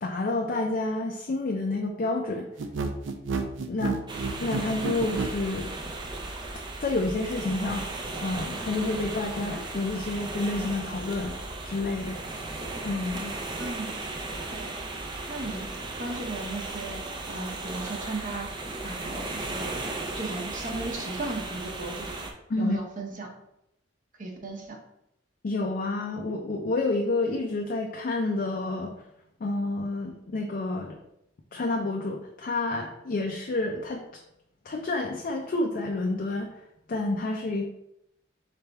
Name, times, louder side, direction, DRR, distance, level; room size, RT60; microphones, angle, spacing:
voice 1, 0.0-2.5 3.7-4.0 4.4-5.7 6.8-11.4 11.6-12.2 12.8-13.3 22.5-22.8 25.4-28.9 29.4-31.0 31.5-34.0 34.7-36.5 36.9-37.7, left 2 dB, 50° left, 2 dB, 0.4 m, -29 dB
sound 1, 2.6-5.4, right 4 dB, 80° right, 0.5 m, -30 dB
sound 2, 4.1-22.3, right 2 dB, 25° right, 0.5 m, -36 dB
voice 2, 13.6-13.9 14.5-14.7 15.3-15.7 16.0-17.0 17.3-18.5 18.8-19.7 20.2-22.1 22.6-23.3 24.2-24.8, right 2 dB, 45° right, 1 dB, 0.8 m, -35 dB
4.0 x 3.3 x 3.4 m, 0.82 s
head